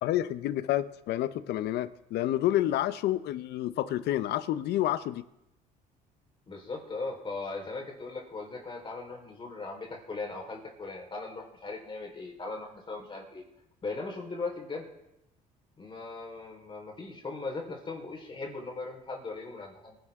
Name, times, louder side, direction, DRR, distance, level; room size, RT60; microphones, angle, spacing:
voice 1, 0.0-5.2, left 13 dB, 75° left, 14 dB, 0.8 m, -29 dB
voice 2, 6.5-13.4 13.8-14.9 15.8-20.0, left 3 dB, 30° left, 0 dB, 4.3 m, -38 dB
25.5 x 11.5 x 3.7 m, 0.86 s
cardioid pair, 110°, 17 cm